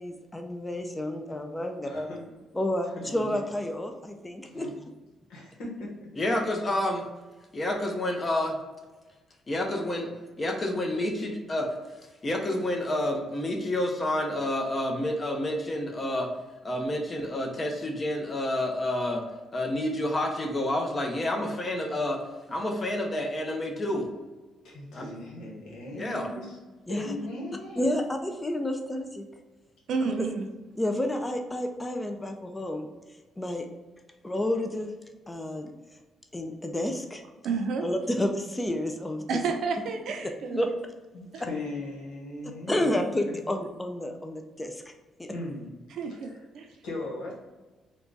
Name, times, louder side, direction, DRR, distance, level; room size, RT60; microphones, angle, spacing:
voice 1, 0.0-2.1 2.5-4.7 26.9-27.1 27.8-29.3 30.0-30.3 30.8-32.9 33.4-33.7 34.2-34.9 35.3-35.7 36.3-37.2 37.8-39.2 40.5-40.9 42.7-44.9 45.2-45.3, left 1 dB, 15° left, 4 dB, 0.4 m, -30 dB
voice 2, 1.8-2.3 3.0-3.4 4.5-4.7 5.3-6.4 24.6-26.6 26.9-27.9 41.1-43.1 45.3-45.7 46.8-47.3, left 2 dB, 90° left, -2 dB, 1.1 m, -38 dB
voice 3, 6.1-7.1 7.5-8.6 9.5-10.1 10.4-11.8 12.2-16.3 16.6-19.2 19.5-22.2 22.5-24.1 24.9-25.1 25.9-26.3, left 1 dB, 35° left, 2 dB, 0.8 m, -29 dB
voice 4, 29.9-30.5 37.4-37.9 39.3-40.7 41.3-41.4 45.9-46.7, right 4 dB, 75° right, 4 dB, 0.5 m, -30 dB
3.7 x 2.3 x 3.8 m, 1.2 s
cardioid pair, 90°, 0 cm